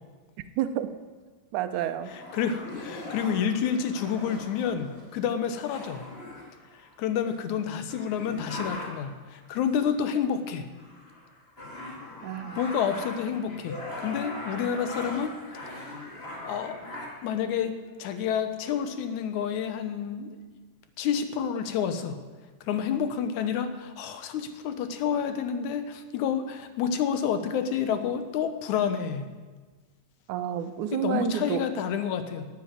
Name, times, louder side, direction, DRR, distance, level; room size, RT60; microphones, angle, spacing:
voice 1, 0.6-0.9 1.5-2.1 12.2-12.6 30.3-31.6, right 11 dB, 80° right, 11 dB, 2.1 m, -29 dB
sound 1, 2.0-7.0 7.6-7.7 7.9-9.2 9.9-10.2 10.6-17.4 18.2-18.3 18.6-19.3, left 2 dB, 25° left, 1.8 m, -40 dB
voice 2, 2.1-6.0 6.7-10.7 12.6-15.4 15.6-16.0 16.4-16.8 17.2-20.4 21.0-22.2 22.6-29.3 30.9-32.5, left 7 dB, 75° left, 10 dB, 2.3 m, -29 dB
12.0 x 8.4 x 8.9 m, 1.4 s
omnidirectional pair, 3.5 m